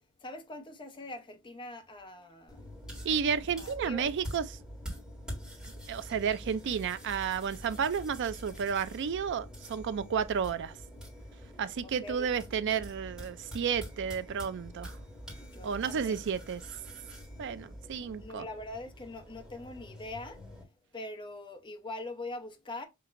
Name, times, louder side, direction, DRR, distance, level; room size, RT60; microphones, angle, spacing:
voice 1, 0.2-2.6 3.5-4.1 12.0-12.3 15.5-16.2 18.2-20.4 20.9-22.9, left 2 dB, 20° left, 0.8 m, -42 dB
sound 1, 2.5-20.6, equal, 5° right, 1.7 m, -46 dB
voice 2, 3.0-4.5 5.9-10.7 11.6-15.0 15.6-16.6 17.4-18.5, right 7 dB, 55° right, 0.4 m, -32 dB
5.8 x 2.8 x 2.5 m
head